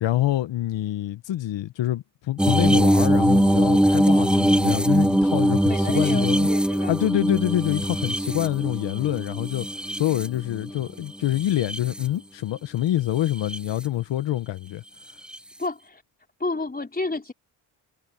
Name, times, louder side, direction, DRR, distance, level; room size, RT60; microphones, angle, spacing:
voice 1, 0.0-6.5 6.9-9.7 9.9-14.8, left 13 dB, 75° left, 1.2 m, -26 dB
sound 1, 2.4-10.7 11.3-12.1 13.3-13.6 15.3-15.4, right 1 dB, ahead, 0.6 m, -22 dB
voice 2, 5.7-7.0 10.7-11.2 15.6-16.0 16.4-17.3, left 3 dB, 20° left, 4.6 m, -31 dB
supercardioid pair, 55°, 44 cm